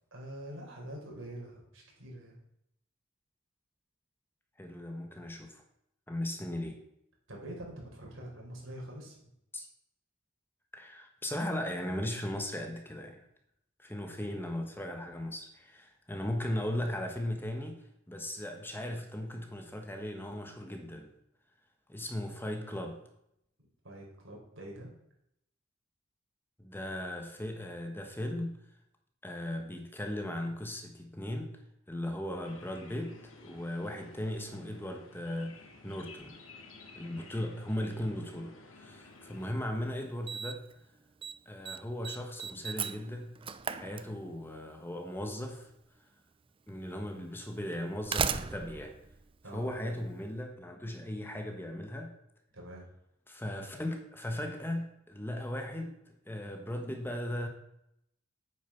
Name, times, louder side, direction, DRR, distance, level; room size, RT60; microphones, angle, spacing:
voice 1, 0.1-2.4 7.3-9.3 23.8-24.9 37.0-37.3 49.4-49.7 52.5-52.9, right 1 dB, 75° right, -2 dB, 4.5 m, -45 dB
voice 2, 4.6-5.6 6.1-6.8 9.5-9.7 10.7-13.2 13.8-21.1 21.9-23.0 26.6-28.6 29.2-31.6 31.9-36.4 36.9-40.6 41.5-43.4 43.8-45.7 46.7-49.0 49.5-52.1 53.3-57.5, left 1 dB, 10° left, 4 dB, 1.2 m, -37 dB
sound 1, 32.4-39.5, left 3 dB, 85° left, 2.0 m, -53 dB
Slam, 39.5-39.6 40.3-40.7 41.0-41.4 41.7-44.6 45.7-45.8 46.7-46.8 47.7-50.1, right 6 dB, 25° right, 0.5 m, -36 dB
9.1 x 8.8 x 5.7 m, 0.78 s
head